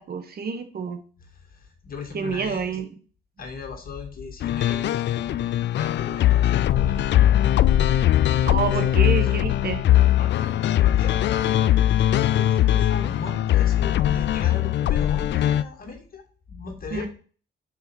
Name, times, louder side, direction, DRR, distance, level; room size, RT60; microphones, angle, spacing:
voice 1, 0.0-1.0 2.1-2.9 8.5-9.8 16.9-17.1, right 5 dB, 50° right, 8 dB, 1.4 m, -28 dB
voice 2, 1.2-2.8 3.4-5.5 5.7-7.1 8.7-9.4 10.2-17.1, left 5 dB, 45° left, 2 dB, 2.3 m, -38 dB
sound 1, 4.4-15.6, left 12 dB, 65° left, 0.5 m, -20 dB
5.8 x 4.7 x 6.2 m, 0.40 s
cardioid pair, 90°, 20 cm